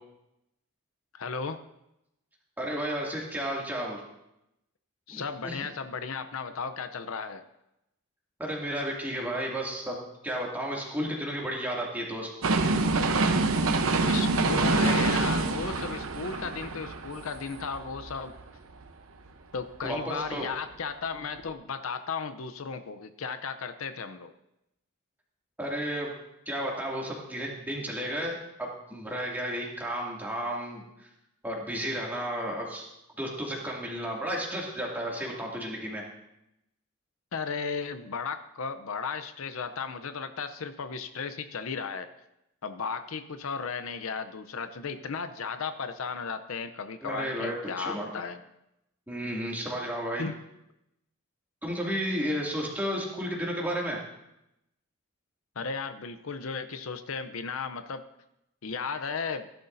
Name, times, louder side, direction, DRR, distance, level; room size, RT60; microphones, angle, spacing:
voice 1, 1.1-1.6 5.1-7.4 14.1-18.3 19.5-24.3 37.3-42.1 42.6-48.4 50.2-50.4 55.6-58.0 58.6-59.5, left 5 dB, 75° left, 10 dB, 0.6 m, -35 dB
voice 2, 2.6-4.0 5.1-5.6 8.4-12.3 19.8-20.5 25.6-26.1 26.5-31.1 31.4-32.9 33.2-36.0 47.0-48.1 49.1-50.2 51.6-54.0, equal, 10° right, -3 dB, 2.4 m, -33 dB
sound 1, 12.4-18.4 18.8-18.9, right 3 dB, 80° right, 0.9 m, -26 dB
17.0 x 11.0 x 2.7 m, 0.86 s
head